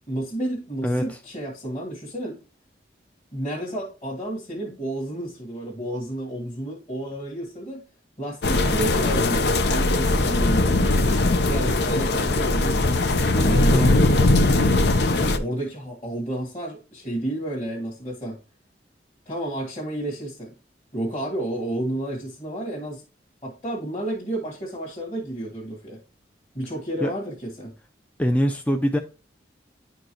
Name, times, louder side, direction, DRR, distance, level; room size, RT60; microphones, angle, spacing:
voice 1, 0.1-2.4 3.3-7.8 8.2-10.8 11.4-13.1 13.3-13.9 15.3-18.4 19.2-20.5 20.9-23.0 23.4-26.0 26.5-27.7, right 1 dB, 35° left, 1.6 m, -31 dB
voice 2, 0.8-1.2 13.7-14.1 27.0-27.1 28.2-29.0, equal, 10° left, 0.4 m, -23 dB
sound 1, 8.4-15.4, left 2 dB, 65° left, 0.7 m, -20 dB
10.5 x 4.6 x 3.0 m
head